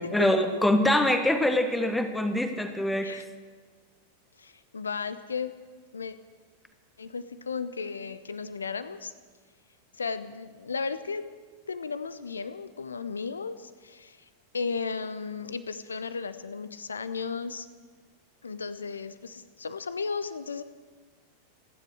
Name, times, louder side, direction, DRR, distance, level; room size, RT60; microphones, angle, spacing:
voice 1, 0.0-3.2, left 1 dB, 5° left, 7 dB, 1.4 m, -24 dB
voice 2, 4.4-5.5 5.9-6.1 7.0-9.1 10.0-11.2 11.7-14.3 14.5-17.7 18.4-20.6, left 5 dB, 75° left, 13 dB, 0.9 m, -34 dB
28.0 x 10.5 x 4.8 m, 1.5 s
figure-of-eight pair, 90°, 0 cm